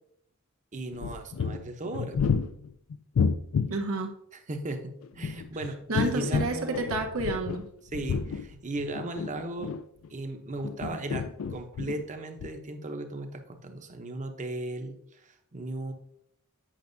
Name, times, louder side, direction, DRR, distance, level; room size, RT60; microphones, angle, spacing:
voice 1, 0.7-2.4 4.3-7.0 7.9-9.8 10.1-15.9, right 2 dB, 35° right, 6 dB, 0.8 m, -37 dB
sound 1, 0.9-3.8 5.0-7.7 7.9-10.1 10.6-12.1 12.4-12.5, left 5 dB, 70° left, 0.4 m, -30 dB
voice 2, 3.7-4.1 5.9-7.6, right 2 dB, 85° right, 3 dB, 1.1 m, -30 dB
8.7 x 5.8 x 2.6 m, 0.71 s
head